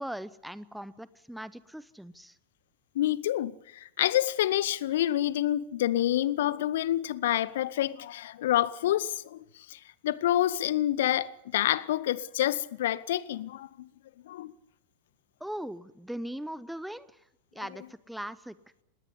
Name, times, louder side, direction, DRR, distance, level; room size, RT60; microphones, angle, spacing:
voice 1, 0.0-2.3 15.4-17.1 17.5-18.6, equal, ahead, 0.8 m, -39 dB
voice 2, 2.9-13.9 14.3-14.5, left 13 dB, 55° left, 0.8 m, -28 dB
20.0 x 17.5 x 9.9 m
figure-of-eight pair, 90°, 0 cm